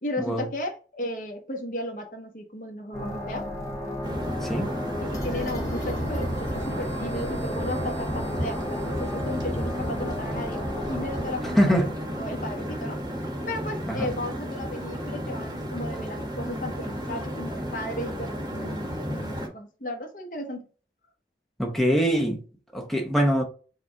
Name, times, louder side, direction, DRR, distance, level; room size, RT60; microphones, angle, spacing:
voice 1, 0.0-3.5 5.0-10.6 10.9-20.7, left 1 dB, 50° left, 1.1 m, -35 dB
sound 1, 2.9-13.5, equal, 15° left, 1.3 m, -35 dB
sound 2, 4.0-19.5, equal, 25° right, 1.0 m, -32 dB
voice 2, 11.6-11.9 13.9-14.1 21.6-22.4 22.7-23.4, equal, ahead, 0.7 m, -23 dB
4.9 x 2.4 x 4.5 m
head